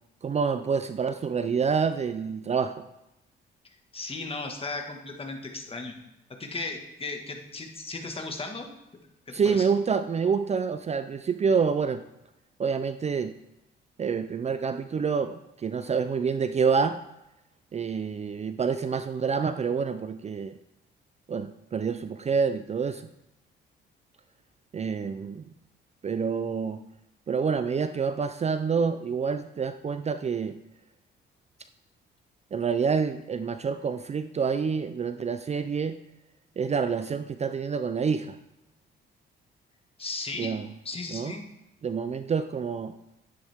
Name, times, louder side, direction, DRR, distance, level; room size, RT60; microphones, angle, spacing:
voice 1, 0.2-2.8 9.3-12.0 12.6-13.3 14.0-17.0 17.7-20.5 21.3-23.0 24.7-25.4 26.0-26.8 27.3-30.6 32.5-36.0 36.6-38.4 40.4-40.7 41.1-41.3 41.8-42.9, right 6 dB, 35° right, 10 dB, 0.5 m, -27 dB
voice 2, 3.9-5.9 6.4-8.7 9.3-9.7 40.0-40.6 40.9-41.4, left 3 dB, 30° left, 3 dB, 1.7 m, -36 dB
11.0 x 10.0 x 3.6 m, 0.88 s
cardioid pair, 90°, 20 cm